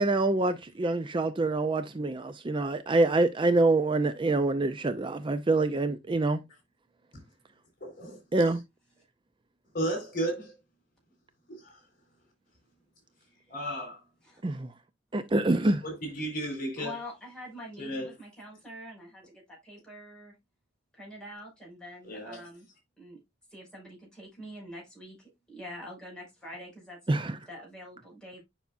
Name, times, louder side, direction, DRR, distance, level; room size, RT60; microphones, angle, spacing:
voice 1, 0.0-6.4 8.3-8.6 14.4-14.7 15.1-15.8 27.1-27.3, right 2 dB, 25° right, 0.5 m, -26 dB
voice 2, 7.8-8.2 9.7-10.5 13.5-14.0 15.8-16.9 17.8-18.1 22.1-22.4, right 1 dB, 50° left, 4.2 m, -33 dB
voice 3, 13.2-13.7 14.2-14.4 16.8-20.3 20.9-22.7 23.0-23.2 23.5-27.0 27.5-28.4, left 1 dB, 5° left, 5.5 m, -45 dB
9.4 x 5.7 x 2.5 m
head